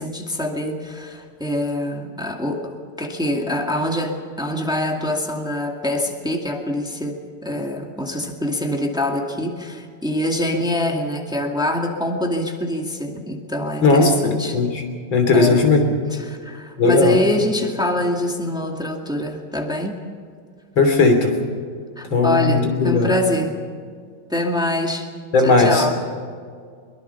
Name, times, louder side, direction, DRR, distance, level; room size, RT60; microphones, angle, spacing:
voice 1, 0.0-14.6 15.3-15.7 16.1-20.0 22.0-23.5 24.3-25.1 25.4-26.0, left 1 dB, ahead, 2 dB, 2.0 m, -24 dB
voice 2, 13.8-14.8 15.1-15.8 16.8-17.1 20.8-21.4 22.1-23.1 25.3-25.9, left 3 dB, 90° left, 4 dB, 3.9 m, -16 dB
23.0 x 22.5 x 5.8 m, 2.1 s
omnidirectional pair, 2.1 m